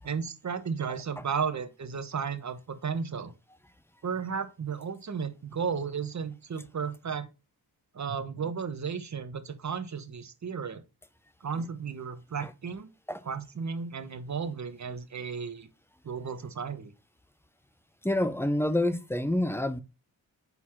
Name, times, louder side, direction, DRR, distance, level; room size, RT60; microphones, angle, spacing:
voice 1, 0.0-3.3 4.0-7.3 7.9-10.8 11.4-12.9 13.2-15.7 16.0-16.9, right 6 dB, 45° right, 1.1 m, -34 dB
voice 2, 18.0-19.8, left 1 dB, 5° left, 0.7 m, -27 dB
4.7 x 4.2 x 5.6 m
cardioid pair, 70°, 39 cm